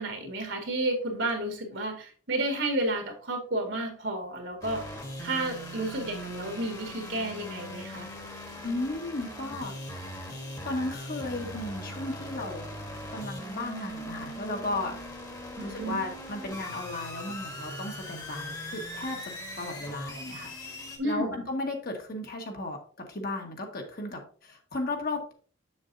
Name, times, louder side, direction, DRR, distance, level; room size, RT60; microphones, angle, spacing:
voice 1, 0.0-4.8 5.2-8.1 15.6-16.1 21.0-21.4, right 1 dB, 75° right, 3 dB, 1.9 m, -31 dB
sound 1, 4.6-21.0, equal, 20° left, 1.3 m, -40 dB
voice 2, 8.6-10.1 10.6-12.6 13.1-15.0 15.6-19.3 19.6-25.3, left 2 dB, 55° left, 2 dB, 1.5 m, -35 dB
7.1 x 7.0 x 2.7 m, 0.41 s
head